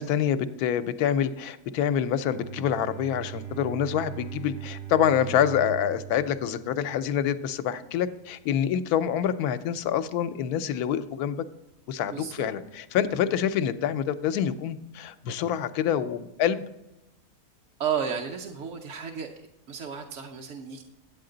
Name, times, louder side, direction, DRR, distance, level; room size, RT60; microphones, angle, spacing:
voice 1, 0.0-11.4 11.9-16.6, left 9 dB, 85° left, 12 dB, 1.1 m, -26 dB
Bowed string instrument, 2.2-7.5, right 9 dB, 75° right, 3.1 m, -40 dB
voice 2, 12.1-12.5 17.8-19.3 19.7-20.8, right 7 dB, 60° right, 2 dB, 0.9 m, -32 dB
9.8 x 8.4 x 3.8 m, 0.93 s
omnidirectional pair, 1.6 m